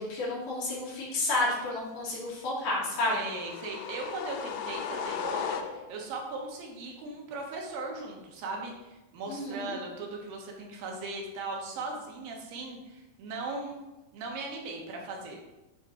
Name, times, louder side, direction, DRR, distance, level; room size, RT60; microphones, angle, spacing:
voice 1, 0.0-3.1 9.3-9.7, left 2 dB, 65° left, -5 dB, 3.3 m, -31 dB
sound 1, 2.9-6.1, left 7 dB, 90° left, 2.4 m, -36 dB
voice 2, 3.1-13.8 14.1-15.4, right 3 dB, 80° right, 0 dB, 3.0 m, -38 dB
9.8 x 3.8 x 4.4 m, 1.0 s
omnidirectional pair, 4.1 m